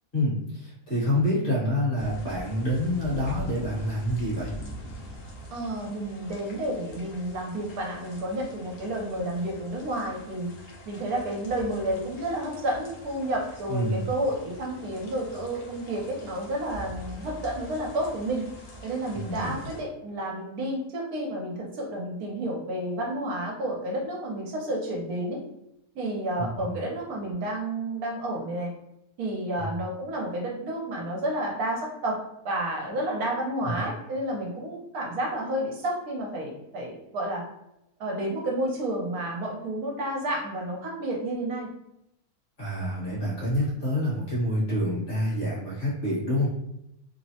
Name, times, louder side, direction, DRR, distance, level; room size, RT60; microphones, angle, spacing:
voice 1, 0.1-4.5 13.7-14.0 19.1-19.6 26.4-26.7 29.6-29.7 33.6-33.8 42.6-46.5, left 1 dB, 40° left, -8 dB, 1.4 m, -27 dB
sound 1, 2.0-19.8, equal, 60° left, 0.8 m, -43 dB
voice 2, 5.5-10.5 10.9-18.5 18.8-25.4 25.9-28.7 29.2-32.2 32.4-37.4 38.0-41.7, right 1 dB, 80° right, -1 dB, 1.2 m, -30 dB
3.1 x 2.0 x 2.7 m, 0.83 s
omnidirectional pair, 1.6 m